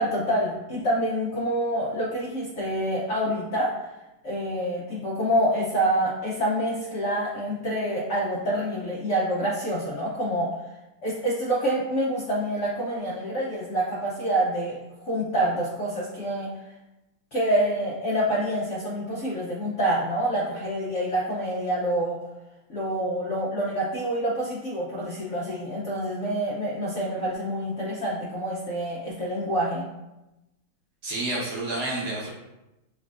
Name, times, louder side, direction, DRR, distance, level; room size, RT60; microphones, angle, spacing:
voice 1, 0.0-3.7 4.2-10.5 11.0-16.5 17.3-22.2 22.7-29.8, right 1 dB, 90° left, -6 dB, 0.6 m, -27 dB
voice 2, 31.0-32.3, right 2 dB, 60° right, -5 dB, 1.4 m, -29 dB
4.5 x 3.3 x 2.4 m, 0.97 s
omnidirectional pair, 2.2 m